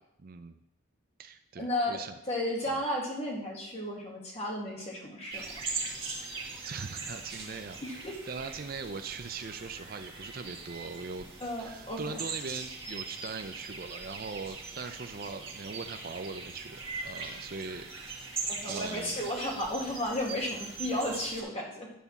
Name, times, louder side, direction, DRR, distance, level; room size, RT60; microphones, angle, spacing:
voice 1, 0.2-0.6 1.2-2.1 6.2-11.3 11.6-17.9 18.6-19.2, right 4 dB, 45° right, 9 dB, 0.4 m, -41 dB
voice 2, 1.6-2.0 2.3-5.5 7.8-8.2 11.4-12.3 18.5-21.9, left 1 dB, 30° left, -2 dB, 2.0 m, -33 dB
sound 1, 5.3-21.4, right 4 dB, 25° right, 1.8 m, -41 dB
10.0 x 4.1 x 7.1 m, 0.80 s
head